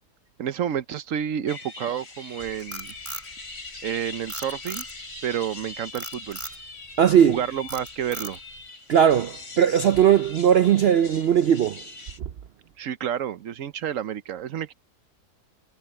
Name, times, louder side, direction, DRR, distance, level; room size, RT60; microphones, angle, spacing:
voice 1, 0.4-2.9 3.8-4.8 5.2-6.4 7.3-8.4 12.8-14.7, right 9 dB, 60° right, 1.0 m, -30 dB
sound 1, 1.5-12.2, left 3 dB, 60° left, 4.2 m, -42 dB
Frog, 2.4-3.9 4.3-5.2 5.9-6.6 7.1-7.3 7.7-8.6, right 1 dB, 30° right, 4.0 m, -37 dB
voice 2, 7.0-7.4 8.9-11.8, right 9 dB, 90° right, 0.5 m, -18 dB
omnidirectional pair, 1.8 m